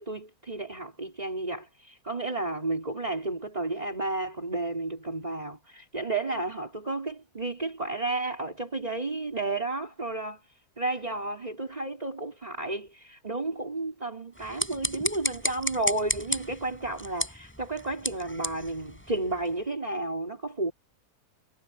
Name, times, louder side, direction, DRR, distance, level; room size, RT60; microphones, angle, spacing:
voice 1, 0.0-10.4 10.8-20.7, right 2 dB, 25° right, 4.4 m, -32 dB
sound 1, 14.3-19.6, equal, 5° left, 7.8 m, -34 dB
omnidirectional pair, 1.7 m